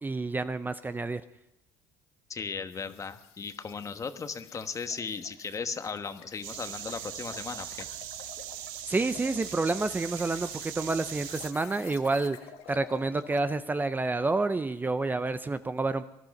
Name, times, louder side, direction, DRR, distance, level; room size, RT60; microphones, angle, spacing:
voice 1, 0.0-1.2 8.9-12.4 12.7-16.0, right 3 dB, 20° right, 11 dB, 0.7 m, -29 dB
voice 2, 2.3-7.9, left 5 dB, 30° left, 9 dB, 1.2 m, -36 dB
sound 1, 2.7-13.5, left 10 dB, 80° left, 1.5 m, -50 dB
sound 2, 6.4-11.5, right 13 dB, 90° right, 0.8 m, -40 dB
20.0 x 11.5 x 5.4 m, 0.87 s
supercardioid pair, 90°, 10 cm